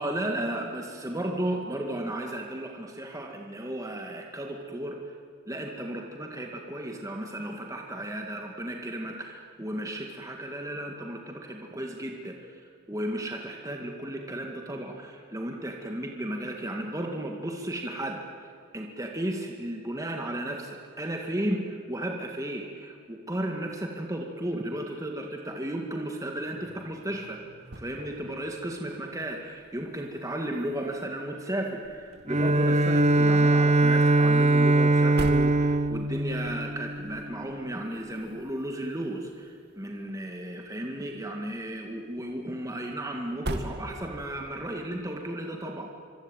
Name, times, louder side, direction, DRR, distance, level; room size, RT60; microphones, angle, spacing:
voice 1, 0.0-5.1 5.5-12.6 12.9-18.2 18.7-27.4 27.8-45.9, right 1 dB, 15° right, 1 dB, 2.1 m, -34 dB
sound 1, 26.4-44.5, right 1 dB, 55° right, 2.2 m, -44 dB
Bowed string instrument, 32.3-37.4, right 2 dB, 35° right, 0.9 m, -22 dB
25.0 x 25.0 x 9.2 m, 2.1 s
head